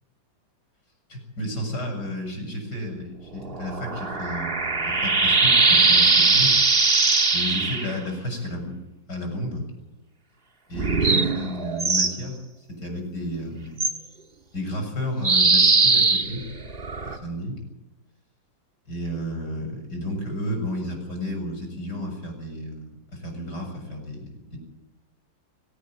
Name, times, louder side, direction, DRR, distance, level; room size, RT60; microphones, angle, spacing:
voice 1, 1.1-6.5 7.3-8.7 9.1-9.7 10.7-12.3 12.7-13.8 14.5-16.4 17.0-17.5 18.9-24.6, left 1 dB, 50° left, 2 dB, 7.6 m, -32 dB
sound 1, 3.4-7.9 10.7-12.2 13.8-13.9 15.2-17.2, right 4 dB, 30° right, 1.6 m, -20 dB
22.0 x 16.0 x 7.7 m, 0.99 s
omnidirectional pair, 2.3 m